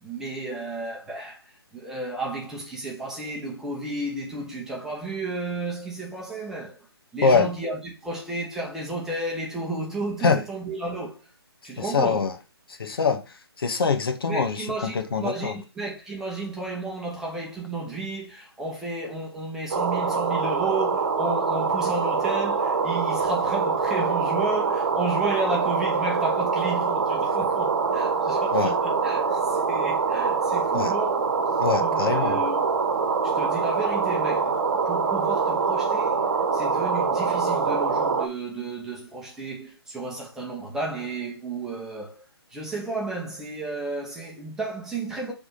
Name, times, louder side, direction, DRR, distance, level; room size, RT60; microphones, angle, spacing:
voice 1, 0.0-6.9 7.1-11.2 11.6-12.3 14.3-31.2 31.8-32.6 33.2-36.2 36.5-42.2 42.5-45.3, right 2 dB, 5° right, 1.1 m, -32 dB
voice 2, 11.8-12.3 12.8-13.2 13.6-15.5 28.5-28.7 30.7-30.9 31.6-32.4, left 4 dB, 65° left, 1.1 m, -23 dB
sound 1, 19.7-38.3, right 5 dB, 50° right, 1.2 m, -24 dB
4.9 x 3.6 x 5.5 m
hypercardioid pair, 155°, 13 cm